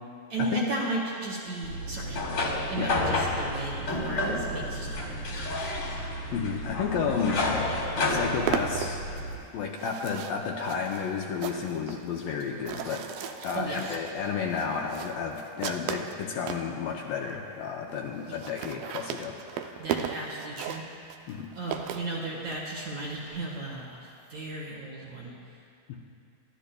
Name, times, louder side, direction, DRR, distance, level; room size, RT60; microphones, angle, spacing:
voice 1, 0.3-2.3 2.7-5.7 13.5-14.0 18.3-18.4 19.8-20.9 21.5-25.3, right 2 dB, 55° right, -4 dB, 2.4 m, -35 dB
sound 1, 1.6-9.4, left 2 dB, 45° left, 1.8 m, -30 dB
voice 2, 5.9-7.5 8.1-9.1 9.5-13.1 13.4-19.8 21.3-21.5 25.9-26.0, left 6 dB, 75° left, 0 dB, 2.3 m, -32 dB
sound 2, 7.5-7.6 7.8-16.7 17.3-17.4 17.6-17.7 17.9-18.0 18.2-22.6, right 9 dB, 85° right, 2.0 m, -36 dB
27.0 x 12.5 x 2.3 m, 2.6 s
omnidirectional pair, 4.6 m